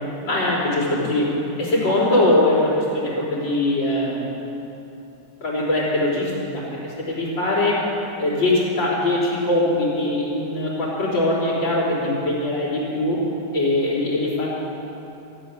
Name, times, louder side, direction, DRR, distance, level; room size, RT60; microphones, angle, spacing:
voice 1, 0.2-1.3 1.6-4.4 5.4-7.8 8.2-13.2 13.5-14.5, left 1 dB, 85° left, -5 dB, 4.3 m, -21 dB
14.5 x 7.7 x 9.6 m, 2.9 s
omnidirectional pair, 2.0 m